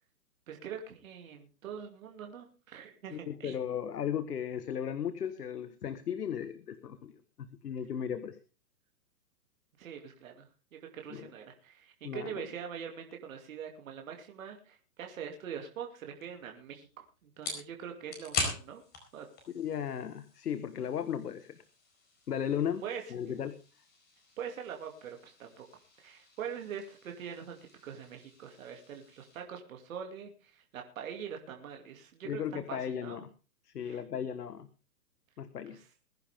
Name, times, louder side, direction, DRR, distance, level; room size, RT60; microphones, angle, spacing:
voice 1, 0.5-3.6 9.8-16.9 17.2-18.8 19.1-19.3 22.8-23.0 24.4-25.6 26.0-27.6 27.8-33.2 33.8-34.0 35.7-35.9, right 8 dB, 55° right, 3 dB, 2.7 m, -43 dB
voice 2, 3.1-7.1 7.4-8.4 11.1-11.3 12.0-12.4 19.5-21.6 22.3-22.8 23.1-23.5 32.2-33.3 33.6-34.7 35.4-35.8, left 8 dB, 75° left, 12 dB, 1.5 m, -36 dB
sound 1, 16.2-29.4, left 4 dB, 20° left, 4.5 m, -44 dB
21.0 x 10.5 x 3.6 m, 0.32 s
hypercardioid pair, 150°, 47 cm